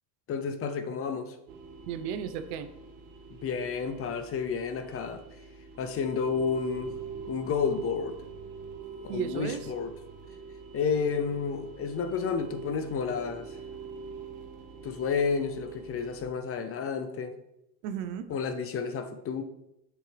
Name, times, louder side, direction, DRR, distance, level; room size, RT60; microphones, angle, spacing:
voice 1, 0.3-1.4 3.4-5.2 5.8-6.9 7.3-8.2 9.0-9.9 10.7-13.6 14.8-17.3 18.3-19.4, left 5 dB, 30° left, 0.6 m, -31 dB
sound 1, 1.5-16.2, right 5 dB, 50° right, 1.4 m, -45 dB
voice 2, 1.9-2.7 8.8-9.7 17.8-18.3, right 8 dB, 70° right, 0.9 m, -35 dB
7.5 x 6.2 x 3.4 m
supercardioid pair, 115°, 48 cm